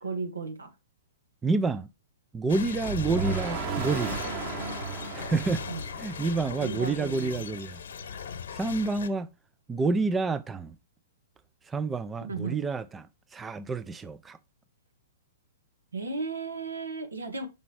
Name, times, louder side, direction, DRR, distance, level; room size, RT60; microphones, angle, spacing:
voice 1, 0.0-0.7 5.6-5.8 6.6-7.4 12.2-12.6 15.9-17.5, right 4 dB, 80° right, 1.9 m, -35 dB
voice 2, 1.4-1.9 2.3-4.2 5.1-5.6 6.0-7.8 8.5-9.3 9.7-10.8 11.7-13.1 13.3-14.4, right 3 dB, 15° right, 0.5 m, -28 dB
sound 1, 2.5-9.1, left 7 dB, 65° left, 1.1 m, -39 dB
sound 2, 2.8-6.9, right 5 dB, 40° right, 1.7 m, -34 dB
6.0 x 5.4 x 4.6 m
figure-of-eight pair, 120°, 0 cm